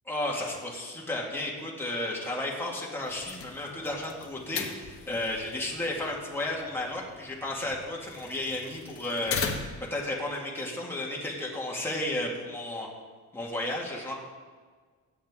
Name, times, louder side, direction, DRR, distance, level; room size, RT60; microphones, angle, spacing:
voice 1, 0.1-12.9 13.3-14.1, left 1 dB, 10° left, -3 dB, 2.0 m, -33 dB
sound 1, 3.0-10.0, left 5 dB, 45° left, 1.3 m, -39 dB
16.0 x 9.2 x 3.7 m, 1.5 s
cardioid pair, 130°, 30 cm